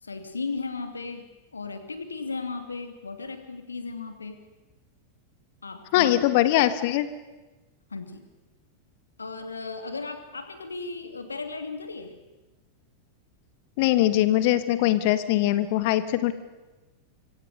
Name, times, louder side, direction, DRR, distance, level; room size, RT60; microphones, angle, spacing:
voice 1, 0.0-1.3 1.5-4.5 5.6-6.2 7.9-8.3 9.2-12.1, left 4 dB, 75° left, 8 dB, 2.5 m, -35 dB
voice 2, 5.9-7.1 13.8-16.3, left 14 dB, 50° left, 13 dB, 1.3 m, -22 dB
25.5 x 24.5 x 6.7 m, 1.1 s
figure-of-eight pair, 90°, 0 cm